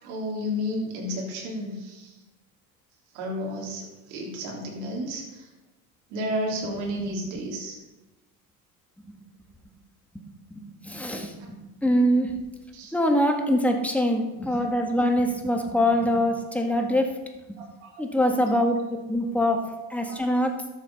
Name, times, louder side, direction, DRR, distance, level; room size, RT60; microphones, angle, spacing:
voice 1, 0.0-2.2 3.1-5.5 6.1-7.8 12.7-13.2 17.6-17.9 20.0-20.4, equal, 85° right, -2 dB, 3.5 m, -32 dB
voice 2, 10.5-12.3 12.9-17.2 18.0-18.8 19.1-19.6 19.9-20.5, equal, 5° left, 2 dB, 2.0 m, -24 dB
13.0 x 7.6 x 5.5 m, 1.1 s
cardioid pair, 115°, 40 cm